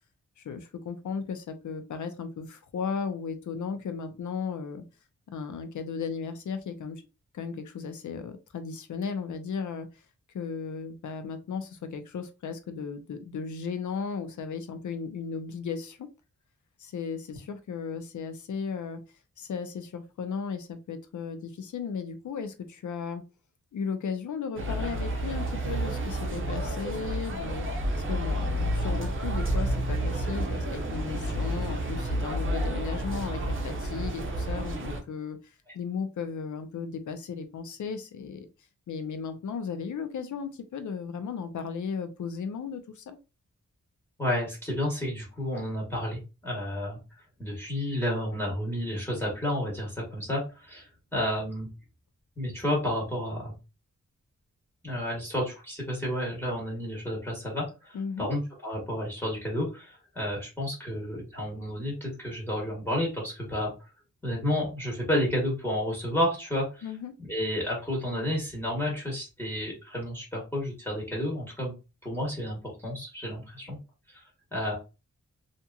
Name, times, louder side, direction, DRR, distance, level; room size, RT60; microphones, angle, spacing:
voice 1, 0.4-4.8 5.3-7.0 7.3-9.9 10.3-16.1 16.8-19.0 19.4-23.2 23.7-27.8 28.1-38.5 38.9-43.2 57.9-58.3 66.8-67.1, left 6 dB, 75° left, 9 dB, 0.6 m, -35 dB
sound 1, 24.6-35.0, right 1 dB, 45° right, 0.7 m, -30 dB
voice 2, 44.2-47.0 47.4-50.9 51.1-51.7 52.4-53.5 54.8-63.7 64.2-66.8 67.2-71.7 72.0-73.8 74.1-74.2 74.5-74.7, equal, 10° left, -4 dB, 1.2 m, -31 dB
2.8 x 2.5 x 2.3 m, 0.29 s
wide cardioid pair, 80°, 30 cm